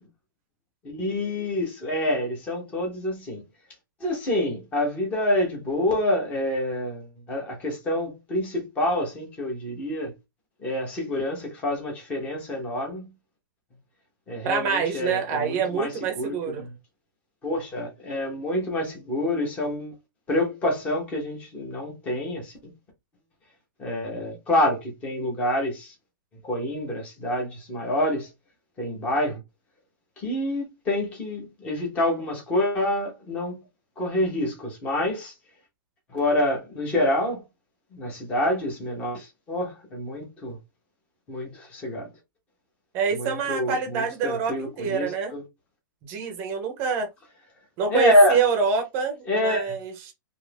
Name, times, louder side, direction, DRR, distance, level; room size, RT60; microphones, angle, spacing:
voice 1, 0.8-3.4 4.0-10.1 10.6-13.1 14.3-16.7 17.4-19.9 20.3-22.5 23.8-25.9 26.4-28.3 28.8-29.4 30.2-33.6 34.0-35.3 36.1-37.4 37.9-40.6 41.3-42.1 43.1-45.4 47.9-48.4 49.3-49.8, left 1 dB, 10° left, 0.8 m, -27 dB
voice 2, 14.4-16.6 42.9-45.3 46.1-47.1 47.8-50.1, right 6 dB, 20° right, 0.6 m, -26 dB
2.8 x 2.5 x 3.3 m
hypercardioid pair, 180°, 11 cm